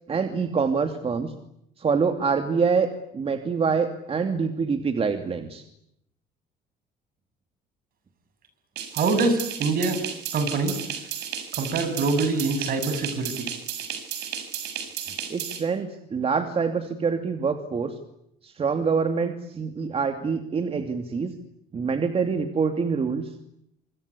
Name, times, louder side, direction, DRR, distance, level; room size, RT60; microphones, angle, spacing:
voice 1, 0.1-1.3 1.8-2.9 3.1-5.6 15.3-17.9 18.4-21.3 21.7-23.3, right 5 dB, 35° right, 7 dB, 2.6 m, -25 dB
sound 1, 8.8-15.6, right 9 dB, 80° right, 6.7 m, -34 dB
voice 2, 8.9-10.0 10.3-10.8 11.5-13.5, right 3 dB, 60° right, 11 dB, 7.0 m, -24 dB
27.0 x 26.0 x 8.4 m, 0.77 s
cardioid pair, 110°, 17 cm